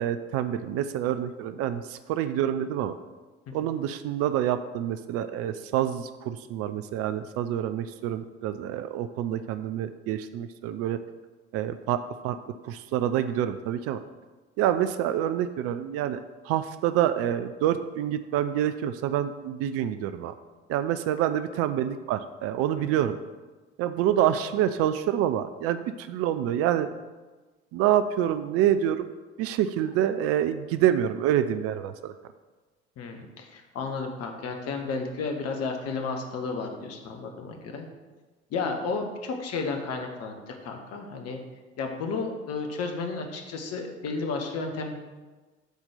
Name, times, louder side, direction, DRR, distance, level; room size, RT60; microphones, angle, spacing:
voice 1, 0.0-2.9 3.5-11.0 11.5-12.4 12.6-14.0 14.6-20.3 20.7-23.2 23.8-26.9 27.7-29.1 29.4-32.1, right 11 dB, 45° right, 11 dB, 0.5 m, -27 dB
voice 2, 33.0-37.9 38.5-41.4 41.8-44.9, left 4 dB, 45° left, 3 dB, 1.3 m, -32 dB
8.1 x 4.3 x 6.6 m, 1.3 s
figure-of-eight pair, 60°, 34 cm